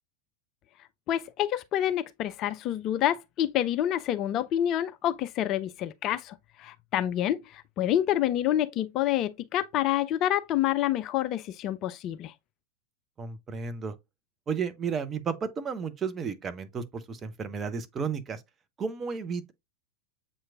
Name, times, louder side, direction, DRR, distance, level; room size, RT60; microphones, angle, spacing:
voice 1, 1.1-12.3, left 12 dB, 35° left, 0.3 m, -28 dB
voice 2, 13.2-13.9 14.5-18.4 18.8-19.5, right 5 dB, 20° right, 0.5 m, -33 dB
7.3 x 2.9 x 2.4 m
figure-of-eight pair, 90°, 0 cm